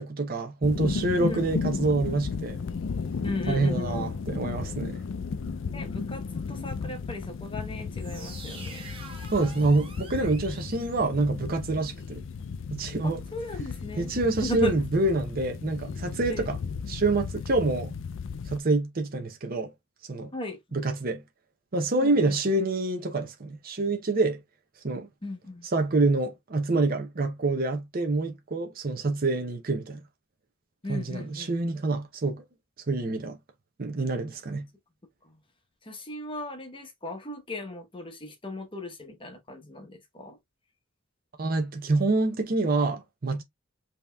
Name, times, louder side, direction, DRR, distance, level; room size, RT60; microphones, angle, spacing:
voice 1, 0.0-2.6 3.5-5.0 9.3-12.2 12.7-13.2 14.0-16.6 16.9-17.9 18.5-19.7 20.1-20.3 20.7-21.2 21.7-24.4 24.8-25.1 25.7-30.0 30.9-32.4 32.9-33.4 33.8-34.7 41.4-43.4, right 2 dB, 45° right, 0.6 m, -26 dB
sound 1, 0.6-18.6, left 5 dB, 60° left, 0.4 m, -34 dB
voice 2, 3.2-4.2 5.7-8.9 13.0-14.1 14.4-14.8 16.3-16.5 20.3-20.6 22.0-22.3 25.2-25.7 30.8-31.5 35.2-35.4 35.8-40.4, left 1 dB, 25° left, 0.9 m, -37 dB
sound 2, 7.9-11.7, right 3 dB, 25° right, 1.1 m, -46 dB
5.3 x 2.9 x 2.2 m
head